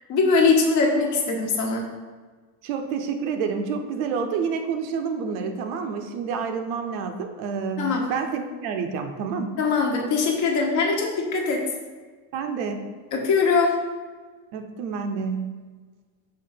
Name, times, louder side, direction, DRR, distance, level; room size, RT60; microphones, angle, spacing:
voice 1, 0.0-1.8 7.8-8.0 9.6-11.6 13.1-13.7, left 4 dB, 40° left, 1 dB, 1.1 m, -21 dB
voice 2, 2.6-9.6 12.3-12.9 14.5-15.6, right 5 dB, 70° right, 6 dB, 0.8 m, -28 dB
5.6 x 3.2 x 5.7 m, 1.4 s
cardioid pair, 150°, 44 cm